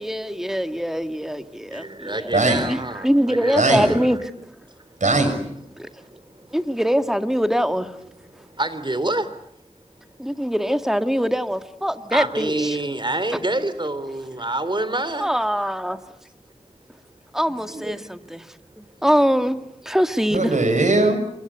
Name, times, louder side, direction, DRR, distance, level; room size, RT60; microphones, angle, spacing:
voice 1, 0.0-2.3 2.7-4.2 5.8-5.9 6.5-7.9 10.2-12.8 15.2-16.0 17.3-18.5 18.8-19.6 19.8-20.5, equal, 5° right, 8 dB, 2.0 m, -23 dB
voice 2, 1.7-4.3 8.6-9.3 12.1-15.3 17.7-18.0, right 2 dB, 40° right, 13 dB, 3.4 m, -27 dB
voice 3, 2.3-2.6 3.6-3.9 5.0-5.4 20.3-21.2, right 2 dB, 80° right, 8 dB, 6.1 m, -19 dB
29.0 x 23.5 x 8.3 m, 0.74 s
wide cardioid pair, 55°, 13 cm